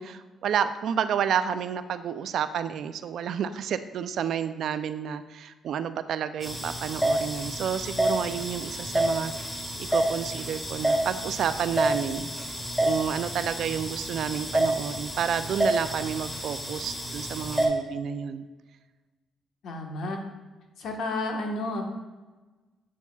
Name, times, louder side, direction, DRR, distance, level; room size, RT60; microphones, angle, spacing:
voice 1, 0.0-12.3 12.8-18.5, right 8 dB, 70° right, 12 dB, 0.4 m, -30 dB
sound 1, 6.4-17.7, right 1 dB, 10° left, 1.7 m, -29 dB
voice 2, 19.6-20.2 20.8-21.8, left 2 dB, 70° left, 2 dB, 1.3 m, -31 dB
8.3 x 7.0 x 2.4 m, 1.2 s
cardioid pair, 90°, 0 cm